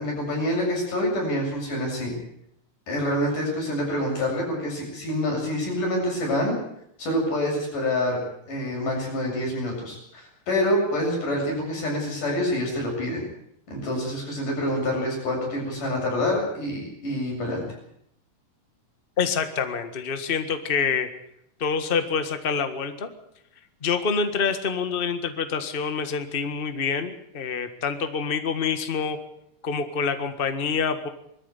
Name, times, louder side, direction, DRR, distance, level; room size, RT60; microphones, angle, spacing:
voice 1, 0.0-2.2 2.9-6.6 7.0-8.2 8.5-13.2 13.7-17.6, left 1 dB, 70° left, -1 dB, 9.2 m, -26 dB
voice 2, 19.2-21.1 21.6-23.1 23.8-29.2 29.6-31.1, left 5 dB, 35° left, 8 dB, 0.9 m, -26 dB
21.0 x 14.0 x 9.6 m, 0.75 s
omnidirectional pair, 3.8 m